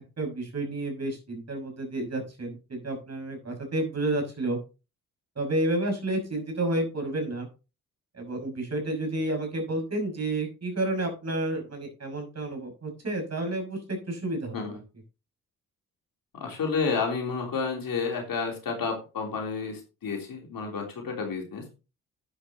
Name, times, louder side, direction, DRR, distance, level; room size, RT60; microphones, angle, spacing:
voice 1, 0.0-4.6 5.4-7.5 8.1-14.8, right 1 dB, 35° right, 4 dB, 6.1 m, -30 dB
voice 2, 16.3-21.8, left 5 dB, 50° left, 2 dB, 3.5 m, -31 dB
11.5 x 9.9 x 2.9 m, 0.31 s
figure-of-eight pair, 40°, 43 cm